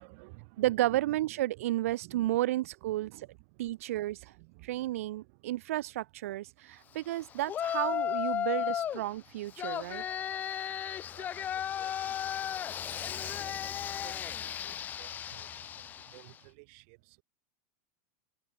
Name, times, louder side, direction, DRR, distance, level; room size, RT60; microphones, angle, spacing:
voice 1, 0.0-2.4 2.9-5.5 6.6-7.0 11.1-17.2, right 33 dB, 55° right, 4.5 m, -55 dB
voice 2, 0.6-3.3 3.6-4.3 4.6-10.0, right 15 dB, 80° right, 1.0 m, -32 dB
Yell, 7.5-9.0 9.6-16.3, left 9 dB, 25° left, 0.5 m, -35 dB
supercardioid pair, 145°, 8 cm